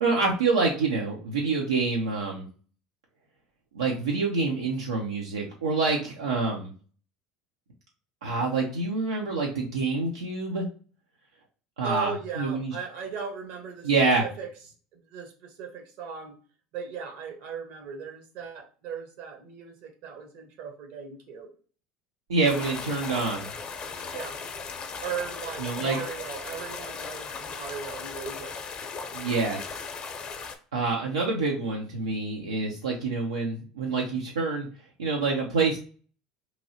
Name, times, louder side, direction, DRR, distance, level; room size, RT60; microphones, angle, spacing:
voice 1, 0.0-2.5 3.7-6.7 8.2-10.7 11.8-12.7 13.8-14.2 22.3-23.5 25.6-26.0 29.1-29.6 30.7-34.7 35.0-35.8, right 3 dB, 90° right, -1 dB, 0.5 m, -26 dB
voice 2, 11.8-13.9 14.2-14.5 14.9-16.3 16.7-21.5 24.1-24.4 25.0-28.6, right 6 dB, 65° right, 4 dB, 0.9 m, -37 dB
sound 1, 22.4-30.6, left 5 dB, 40° left, 0.6 m, -37 dB
2.9 x 2.7 x 2.7 m, 0.40 s
hypercardioid pair, 80°, 3 cm